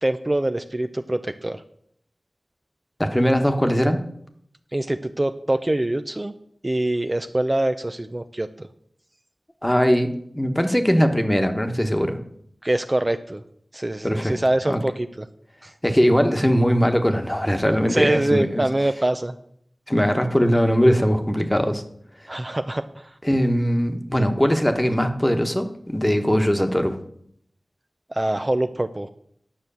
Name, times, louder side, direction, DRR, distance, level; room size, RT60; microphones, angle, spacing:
voice 1, 0.0-1.6 4.7-6.3 6.6-8.7 12.6-13.4 13.7-15.3 15.6-15.7 17.9-19.3 22.3-23.1 28.1-29.1, right 1 dB, 30° right, 8 dB, 0.5 m, -24 dB
voice 2, 3.0-4.0 9.6-12.2 14.0-14.4 14.7-14.8 15.8-18.6 19.9-21.8 23.2-27.0, equal, 15° left, 6 dB, 1.3 m, -20 dB
10.0 x 6.1 x 7.0 m, 0.68 s
wide cardioid pair, 55°, 0 cm